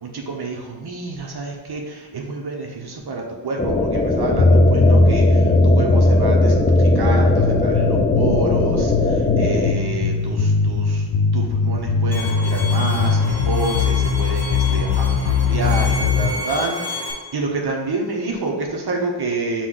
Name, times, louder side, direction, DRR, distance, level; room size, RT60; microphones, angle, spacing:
voice 1, 0.0-19.7, right 3 dB, 55° right, 0 dB, 0.7 m, -28 dB
sound 1, 3.6-9.7, left 3 dB, 20° left, 0.3 m, -21 dB
sound 2, 4.4-16.3, left 3 dB, 70° left, 0.6 m, -18 dB
Bowed string instrument, 12.1-17.1, left 2 dB, 5° left, 1.3 m, -31 dB
6.0 x 2.3 x 3.7 m, 1.2 s
wide cardioid pair, 95°, 48 cm